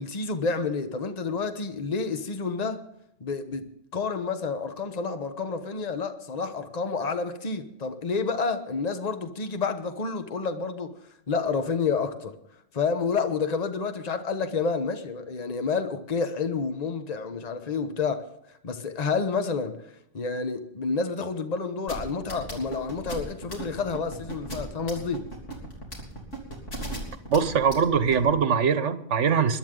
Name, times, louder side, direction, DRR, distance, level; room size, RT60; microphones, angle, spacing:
voice 1, 0.0-2.8 3.2-3.7 3.9-10.9 11.3-12.3 12.7-18.3 18.6-19.8 20.1-25.2, left 4 dB, 35° left, 1.1 m, -29 dB
sound 1, 21.9-28.3, right 1 dB, 80° left, 3.8 m, -35 dB
voice 2, 27.3-29.6, right 6 dB, 75° right, 1.3 m, -22 dB
21.0 x 12.0 x 3.8 m
omnidirectional pair, 1.2 m